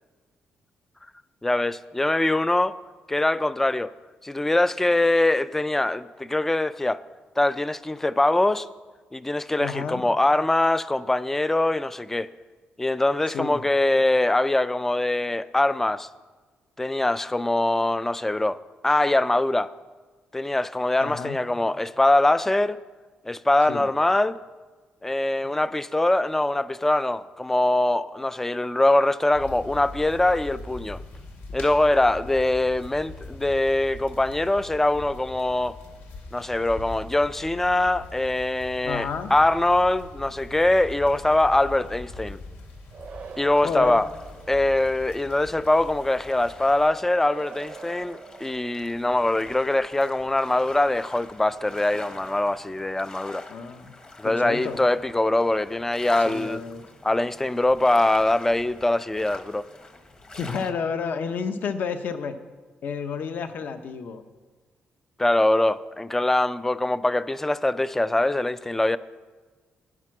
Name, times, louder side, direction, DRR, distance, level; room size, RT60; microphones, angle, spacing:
voice 1, 1.4-2.8 3.1-3.9 4.2-7.0 7.4-8.7 9.1-12.3 12.8-16.1 16.8-19.7 20.3-22.8 23.3-24.4 25.0-31.0 31.5-35.8 36.3-42.4 43.4-44.1 44.5-53.4 54.2-56.6 57.0-59.6 65.2-69.0, left 2 dB, 10° left, 0.3 m, -23 dB
voice 2, 9.6-10.0 13.3-13.6 21.0-21.4 23.7-23.8 25.4-25.5 31.5-31.6 38.8-39.3 43.6-44.0 53.5-53.9 54.2-54.8 56.2-56.8 60.4-62.4 62.8-64.2, left 6 dB, 55° left, 0.8 m, -30 dB
sound 1, 29.3-46.9, left 2 dB, 90° left, 2.3 m, -42 dB
sound 2, 42.9-45.0 47.1-49.2, right 5 dB, 40° right, 0.6 m, -43 dB
sound 3, 43.9-60.7, left 2 dB, 25° left, 1.0 m, -46 dB
11.0 x 10.5 x 6.0 m
cardioid pair, 155°, 4 cm